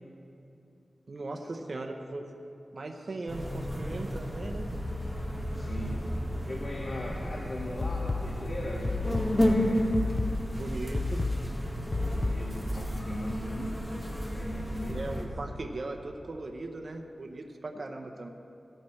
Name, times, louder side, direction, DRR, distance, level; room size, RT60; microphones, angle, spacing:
voice 1, 1.1-2.3 2.7-4.7 10.5-11.3 14.9-18.3, right 2 dB, 55° right, 3 dB, 0.8 m, -38 dB
sound 1, 3.3-15.2, equal, 10° left, 1.7 m, -32 dB
voice 2, 5.5-6.0 6.4-9.8 12.1-13.7 14.3-15.0 17.7-17.8, left 1 dB, 65° left, -2 dB, 1.3 m, -39 dB
sound 2, 7.8-12.8, left 3 dB, 45° left, 0.3 m, -33 dB
17.0 x 13.0 x 3.2 m, 2.9 s
wide cardioid pair, 95°, 0 cm